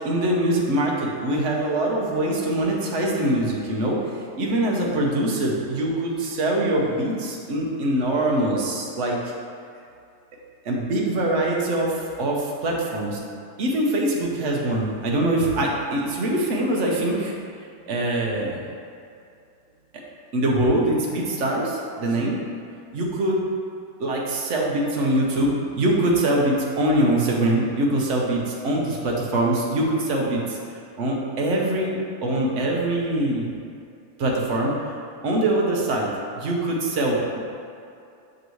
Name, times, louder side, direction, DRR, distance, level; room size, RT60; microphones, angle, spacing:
voice 1, 0.0-9.2 10.6-13.2 13.6-17.3 17.9-18.6 20.3-22.4 22.9-23.4 24.0-30.6 31.0-33.5 34.2-35.0 35.2-36.1 36.4-37.4, right 1 dB, 55° right, -2 dB, 1.2 m, -23 dB
6.8 x 5.2 x 3.1 m, 2.4 s
omnidirectional pair, 1.6 m